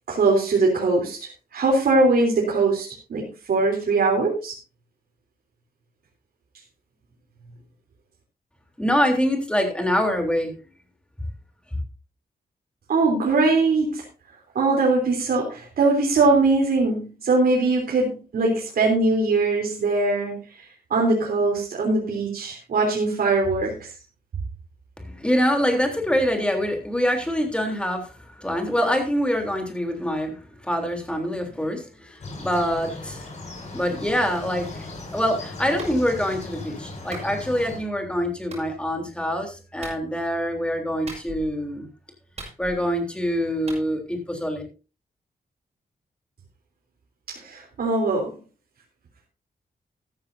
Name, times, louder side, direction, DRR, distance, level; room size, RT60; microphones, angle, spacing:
voice 1, 0.1-4.6 12.9-14.0 14.6-20.7 20.9-23.9 47.3-48.4, right 3 dB, 75° right, -2 dB, 3.5 m, -21 dB
voice 2, 8.8-10.5 25.0-33.2 33.7-34.8 35.1-41.9 42.6-44.6, equal, 5° left, 3 dB, 3.4 m, -25 dB
sound 1, 32.2-37.8, left 2 dB, 50° left, 6.5 m, -38 dB
Clapping, 35.8-36.0 37.1-37.3 38.5-38.7 39.8-40.0 41.1-41.5 42.4-42.9 43.7-43.8, right 3 dB, 45° right, 6.1 m, -38 dB
14.0 x 13.5 x 2.7 m, 0.33 s
wide cardioid pair, 145°, 16 cm